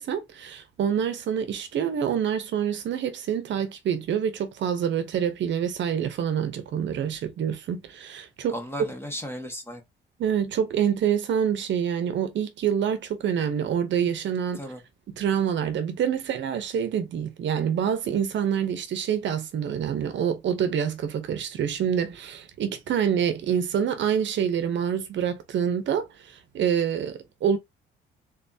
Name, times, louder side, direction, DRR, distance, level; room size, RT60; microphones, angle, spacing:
voice 1, 0.0-8.5 10.2-14.6 15.1-27.6, right 8 dB, 70° right, 0.9 m, -26 dB
voice 2, 8.5-9.8 14.6-14.8, equal, 10° left, 1.6 m, -35 dB
3.7 x 3.3 x 2.7 m
cardioid pair, 90°, 20 cm